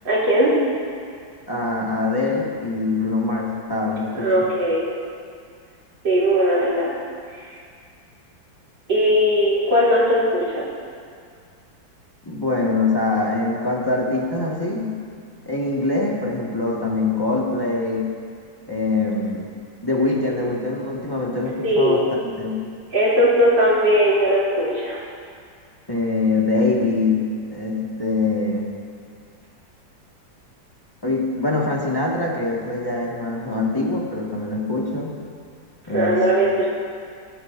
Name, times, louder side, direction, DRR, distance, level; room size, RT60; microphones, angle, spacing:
voice 1, 0.1-0.5 4.1-4.9 6.0-6.9 7.3-7.5 8.9-10.6 21.6-22.0 22.9-25.0 35.9-36.7, equal, 75° right, -8 dB, 3.9 m, -19 dB
voice 2, 1.5-4.5 12.2-15.0 15.4-18.1 18.7-19.5 19.8-22.6 25.9-28.7 31.0-35.1 35.9-36.2, left 3 dB, 15° left, -4 dB, 1.5 m, -23 dB
20.5 x 11.5 x 2.6 m, 2.2 s
omnidirectional pair, 2.0 m